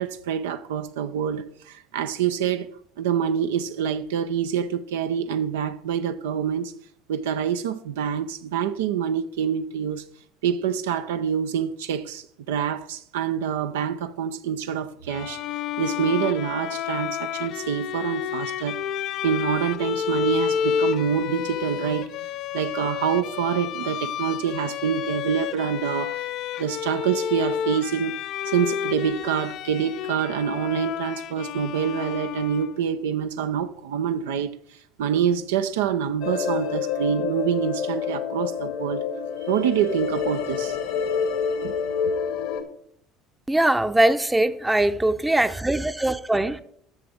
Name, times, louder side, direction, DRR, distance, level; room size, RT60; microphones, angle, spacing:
voice 1, 0.0-2.7 3.0-6.7 7.1-10.0 10.4-15.4 15.8-18.8 19.2-22.2 22.5-26.2 26.6-28.2 28.5-34.5 35.0-39.0 39.4-40.8 41.6-41.7, right 8 dB, 80° right, 0.4 m, -26 dB
Bowed string instrument, 15.1-32.9, left 9 dB, 55° left, 0.4 m, -30 dB
sound 1, 36.2-42.6, left 7 dB, 75° left, 1.1 m, -28 dB
voice 2, 43.5-46.6, right 1 dB, 10° right, 0.6 m, -21 dB
10.5 x 6.8 x 3.4 m
hypercardioid pair, 65°, 0 cm